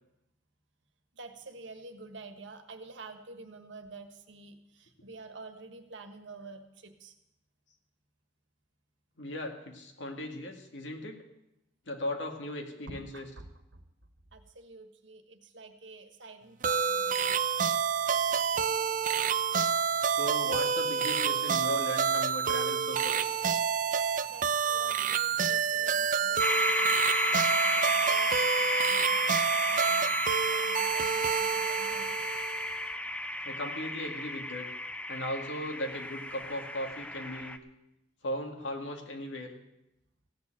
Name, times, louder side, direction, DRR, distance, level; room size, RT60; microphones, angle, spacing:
voice 1, 1.1-7.1 12.9-13.9 14.3-17.5 23.9-32.2, right 3 dB, 75° right, 7 dB, 1.4 m, -49 dB
voice 2, 9.2-11.2 11.9-13.3 20.1-23.2 33.4-34.7 35.1-37.6 38.2-39.5, left 1 dB, 80° left, 3 dB, 2.2 m, -37 dB
sound 1, 16.6-32.8, right 7 dB, 45° right, 0.5 m, -28 dB
sound 2, 26.4-37.6, left 1 dB, 5° left, 0.6 m, -32 dB
15.5 x 6.8 x 9.1 m, 0.90 s
head